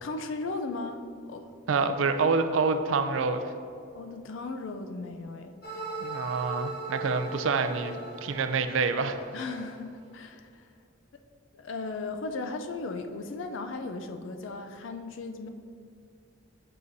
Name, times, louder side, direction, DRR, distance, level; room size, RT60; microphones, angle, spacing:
voice 1, 0.0-1.0 1.3-1.5 3.9-5.5 9.3-10.6 11.5-15.5, left 3 dB, 75° left, 6 dB, 0.4 m, -36 dB
voice 2, 1.7-3.5 6.0-9.2, right 4 dB, 85° right, 9 dB, 0.4 m, -27 dB
sound 1, 5.6-9.6, right 2 dB, 55° left, 1.1 m, -39 dB
7.6 x 4.8 x 2.6 m, 2.4 s
head